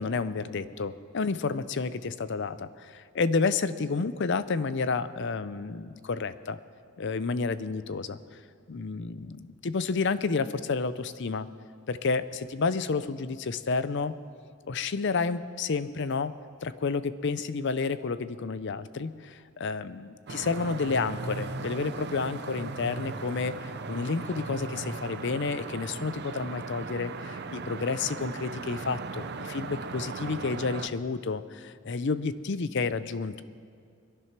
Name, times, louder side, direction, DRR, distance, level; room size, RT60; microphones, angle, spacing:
voice 1, 0.0-6.6 7.0-8.2 8.7-11.5 11.9-14.2 14.7-16.3 16.6-33.4, left 4 dB, 55° left, 14 dB, 0.5 m, -30 dB
sound 1, 20.3-30.9, right 4 dB, 50° right, 0.7 m, -38 dB
22.0 x 11.0 x 6.0 m, 2.2 s
head